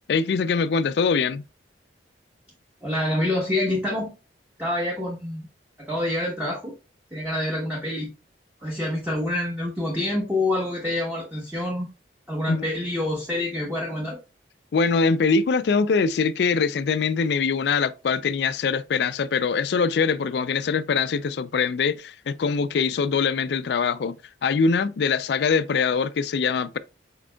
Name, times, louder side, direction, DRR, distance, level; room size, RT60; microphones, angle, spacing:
voice 1, 0.1-1.4 12.5-12.7 14.7-24.2 24.4-26.8, left 5 dB, 60° left, 0.3 m, -23 dB
voice 2, 2.8-4.1 4.6-5.4 5.8-6.7 7.1-8.1 8.6-11.9 12.3-14.2, left 1 dB, 10° right, 1.0 m, -27 dB
5.0 x 4.6 x 2.2 m
head